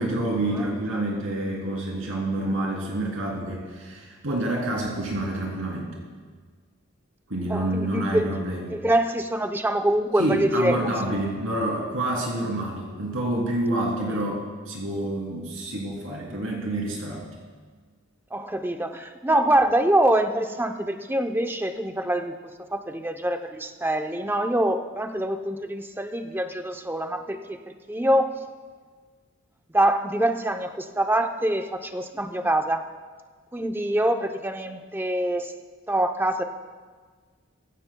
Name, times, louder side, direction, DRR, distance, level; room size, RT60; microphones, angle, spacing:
voice 1, 0.0-5.9 7.3-8.7 10.2-17.2, right 1 dB, 70° right, -2 dB, 2.9 m, -28 dB
voice 2, 7.5-8.3 8.7-11.2 12.5-12.6 14.1-14.2 18.3-28.4 29.7-32.8 33.5-35.5 35.9-36.4, right 1 dB, 10° right, 5 dB, 0.6 m, -25 dB
23.0 x 15.5 x 2.3 m, 1.5 s
head